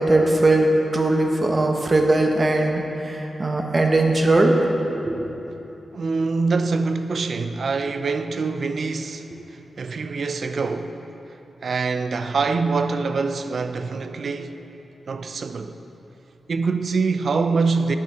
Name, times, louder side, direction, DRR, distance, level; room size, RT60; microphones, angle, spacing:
voice 1, 0.0-4.5 5.1-5.2, right 2 dB, 35° right, 0.8 m, -19 dB
voice 2, 5.9-9.3 9.8-11.0 11.6-14.5 15.1-15.7 16.5-18.0, right 4 dB, 60° right, 0.4 m, -24 dB
8.8 x 7.4 x 3.5 m
wide cardioid pair, 95°, 0 cm